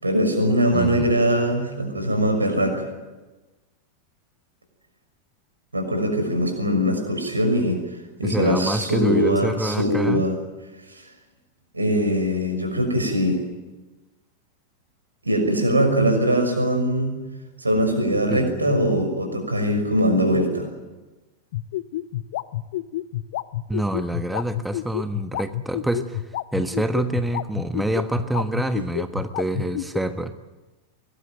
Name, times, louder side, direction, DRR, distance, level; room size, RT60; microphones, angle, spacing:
voice 1, 0.0-2.9 5.7-10.4 10.9-11.1 11.7-13.4 15.2-17.2 17.6-20.7, equal, 80° right, 6 dB, 6.1 m, -22 dB
voice 2, 0.7-1.1 8.2-10.3 18.3-18.7 23.7-26.2 26.5-30.3, right 1 dB, 5° right, 9 dB, 1.3 m, -26 dB
sound 1, 21.5-30.0, left 15 dB, 55° left, 0.8 m, -28 dB
24.0 x 20.0 x 9.2 m, 1.1 s
figure-of-eight pair, 90°, 0 cm